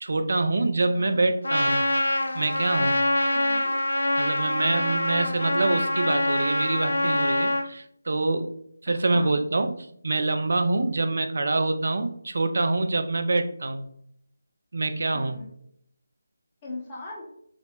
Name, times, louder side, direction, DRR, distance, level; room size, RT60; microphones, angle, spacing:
voice 1, 0.0-1.8 2.3-3.0 4.2-8.5 8.8-13.9 14.7-15.4, right 2 dB, 60° right, 8 dB, 0.4 m, -26 dB
voice 2, 0.9-1.2 3.3-3.8 8.9-9.3 15.1-15.5 16.6-17.2, left 2 dB, 25° left, -3 dB, 0.8 m, -40 dB
Trumpet, 1.4-7.7, left 1 dB, 75° left, 0.4 m, -25 dB
4.1 x 2.0 x 2.9 m, 0.70 s
figure-of-eight pair, 155°, 0 cm